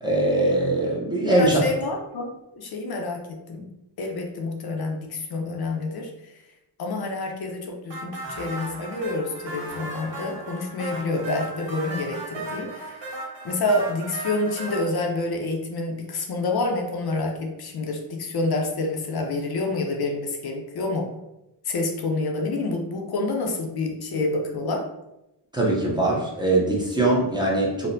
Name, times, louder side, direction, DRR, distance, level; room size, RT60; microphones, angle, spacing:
voice 1, 0.0-1.6 25.5-27.9, right 2 dB, 10° right, -4 dB, 0.6 m, -22 dB
voice 2, 1.2-3.6 4.0-6.3 6.8-13.0 13.4-21.1 21.6-24.9, left 2 dB, 60° left, 2 dB, 0.5 m, -28 dB
sound 1, 7.9-14.8, right 2 dB, 80° right, 1.2 m, -36 dB
4.2 x 2.0 x 2.6 m, 0.91 s
wide cardioid pair, 160°, 43 cm